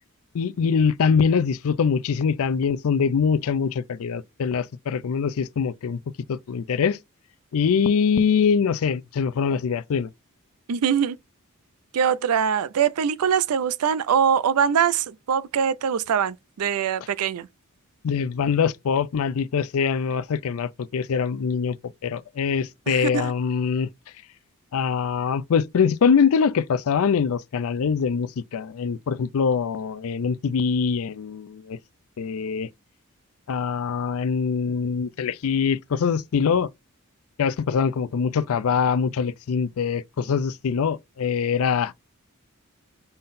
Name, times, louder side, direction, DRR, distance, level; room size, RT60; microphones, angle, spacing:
voice 1, 0.3-6.0 6.3-7.0 7.5-10.1 18.0-21.8 22.0-23.9 24.7-31.8 32.2-32.7 33.5-36.7 37.4-41.9, left 6 dB, 70° left, 0.4 m, -23 dB
voice 2, 10.7-11.2 11.9-17.5 22.9-23.3, right 7 dB, 80° right, 0.4 m, -23 dB
5.4 x 3.8 x 2.6 m
head